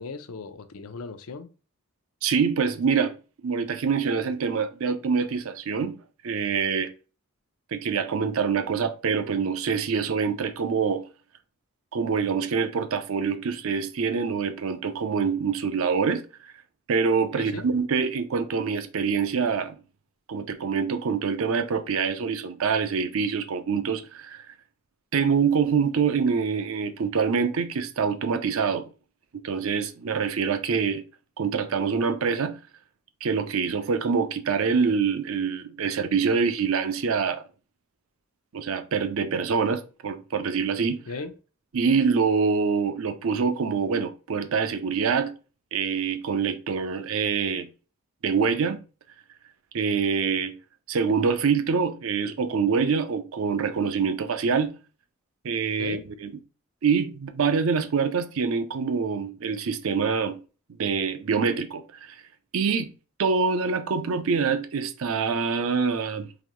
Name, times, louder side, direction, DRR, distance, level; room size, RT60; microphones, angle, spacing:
voice 1, 0.0-1.5 17.3-17.6 41.1-41.3 55.8-56.0, left 4 dB, 80° left, 0.5 m, -36 dB
voice 2, 2.2-3.2 3.4-6.0 6.2-6.9 7.7-11.0 11.9-16.5 16.9-19.8 20.3-24.5 25.1-28.9 29.3-31.0 31.4-32.6 33.2-37.4 38.5-41.0 41.7-45.3 45.7-47.7 48.2-48.8 49.7-50.6 50.9-54.7 55.4-56.3 56.8-60.4 60.8-62.2 62.5-62.9 63.2-66.3, right 5 dB, 70° right, 0.5 m, -25 dB
3.9 x 2.9 x 3.0 m
head